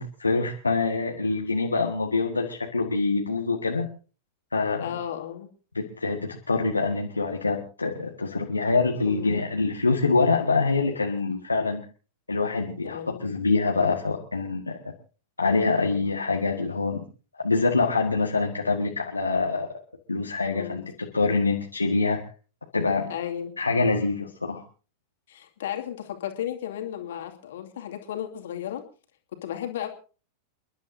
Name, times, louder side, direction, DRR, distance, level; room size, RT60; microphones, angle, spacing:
voice 1, 0.0-3.9 4.5-4.8 5.7-11.8 12.3-14.9 15.4-17.0 17.4-19.7 20.1-20.8 21.1-22.2 22.7-23.1 23.6-24.6, left 3 dB, 80° left, 1 dB, 1.6 m, -25 dB
voice 2, 4.8-5.5 9.0-9.5 12.8-13.2 20.5-20.8 23.1-23.5 25.3-28.8 29.3-29.9, left 10 dB, 60° left, 4 dB, 2.4 m, -34 dB
29.5 x 11.5 x 2.7 m, 0.37 s
figure-of-eight pair, 90°, 0 cm